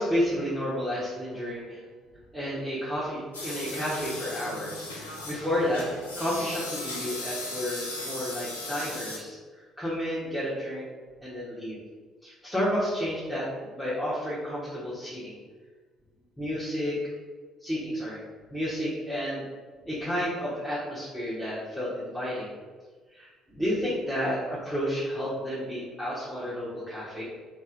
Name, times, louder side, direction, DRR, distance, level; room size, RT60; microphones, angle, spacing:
voice 1, 0.0-1.8 2.3-5.9 6.2-10.9 11.2-11.8 12.2-13.5 13.7-15.4 16.4-16.9 17.6-18.2 18.5-19.4 19.8-22.5 23.1-27.2, equal, 5° left, -10 dB, 1.2 m, -31 dB
sound 1, 3.3-9.2, left 2 dB, 80° left, 0.5 m, -37 dB
3.4 x 3.0 x 3.8 m, 1.4 s
figure-of-eight pair, 50°, 0 cm